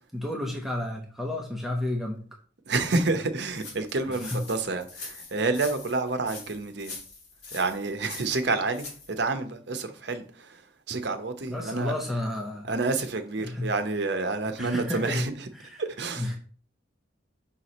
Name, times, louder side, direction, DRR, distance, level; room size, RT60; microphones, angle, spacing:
voice 1, 0.1-2.2 4.1-4.4 11.5-12.7 13.4-13.7 14.6-15.3 15.6-15.8 16.2-16.4, left 1 dB, ahead, 0.9 m, -31 dB
voice 2, 2.7-6.9 7.5-10.6 10.9-11.9 12.6-15.5 15.8-16.4, right 3 dB, 60° right, 0.8 m, -29 dB
sound 1, 3.5-9.1, left 3 dB, 60° left, 2.3 m, -43 dB
5.7 x 4.7 x 4.1 m
head